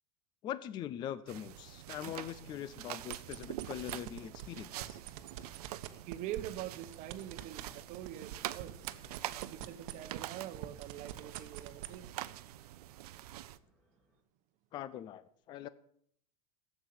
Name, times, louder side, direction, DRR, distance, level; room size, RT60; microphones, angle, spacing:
voice 1, 0.4-5.0 14.7-15.7, left 11 dB, 25° left, 0.4 m, -42 dB
sound 1, 1.3-13.6, right 14 dB, 85° right, 0.7 m, -45 dB
sound 2, 2.8-14.2, equal, ahead, 1.9 m, -67 dB
sound 3, 3.0-4.5 4.8-10.3 10.5-12.0, right 15 dB, 60° right, 1.1 m, -44 dB
voice 2, 6.1-8.9 9.5-12.1, right 12 dB, 40° right, 1.0 m, -44 dB
11.5 x 8.2 x 7.2 m
supercardioid pair, 155°, 19 cm